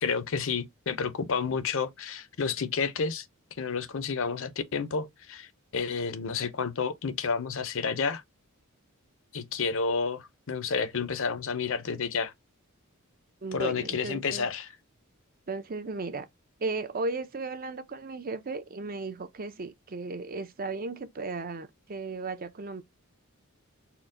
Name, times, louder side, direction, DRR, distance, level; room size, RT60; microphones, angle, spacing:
voice 1, 0.0-3.3 3.6-8.2 9.3-12.3 13.5-14.7, left 5 dB, 60° left, 0.6 m, -30 dB
voice 2, 13.4-14.5 15.5-16.3 16.6-22.8, right 3 dB, 40° right, 0.6 m, -35 dB
4.4 x 2.2 x 3.6 m
head